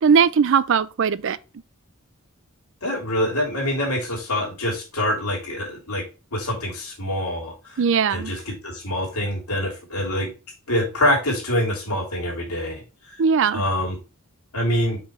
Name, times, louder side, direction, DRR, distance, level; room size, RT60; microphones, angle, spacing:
voice 1, 0.0-1.4 7.8-8.3 13.2-13.6, right 6 dB, 60° right, 0.4 m, -19 dB
voice 2, 2.8-6.0 6.3-7.5 8.1-10.3 10.7-12.8 13.5-14.0 14.5-15.0, left 1 dB, 85° left, 3.2 m, -25 dB
5.9 x 5.1 x 3.2 m
head